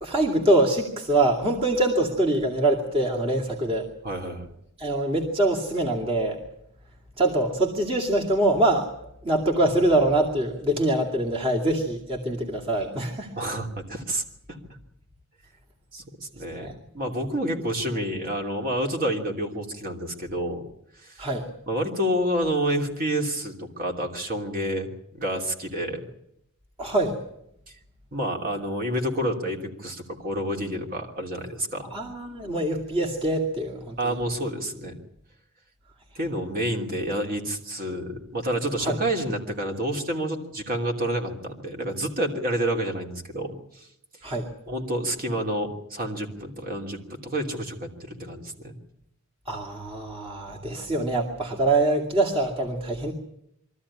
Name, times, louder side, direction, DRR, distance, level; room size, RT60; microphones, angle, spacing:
voice 1, 0.0-3.9 4.8-6.4 7.2-13.3 16.5-16.7 21.2-21.5 26.8-27.2 31.9-34.0 38.8-39.0 44.2-44.5 49.5-53.1, right 1 dB, 25° right, -1 dB, 2.4 m, -24 dB
voice 2, 4.0-4.5 13.4-14.2 14.5-14.6 15.9-16.7 16.9-20.6 21.0-21.3 21.7-26.0 28.1-31.9 34.0-35.0 36.1-43.9 44.7-48.7, right 1 dB, 45° right, 2 dB, 2.9 m, -29 dB
23.0 x 14.0 x 9.8 m, 0.78 s
head